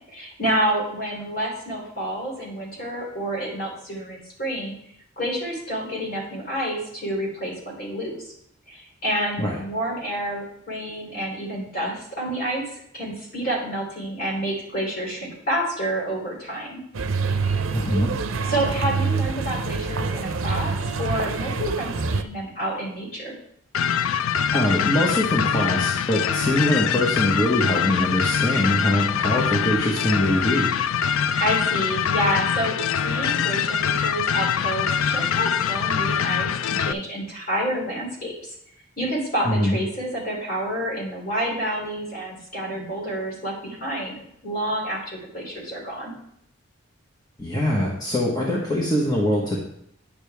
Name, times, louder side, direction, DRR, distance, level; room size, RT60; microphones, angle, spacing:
voice 1, 0.1-4.7 5.2-8.3 8.7-16.8 18.5-23.3 31.1-32.8 33.0-38.5 39.0-46.1, right 1 dB, 45° left, -2 dB, 3.1 m, -29 dB
sound 1, 16.9-22.2, right 4 dB, 75° right, 0.6 m, -26 dB
voice 2, 17.7-18.1 24.5-30.7 39.4-39.8 47.4-49.6, left 1 dB, 20° left, -4 dB, 1.1 m, -23 dB
sound 2, 23.7-36.9, left 8 dB, 80° left, 0.4 m, -24 dB
9.8 x 6.8 x 3.4 m, 0.74 s
head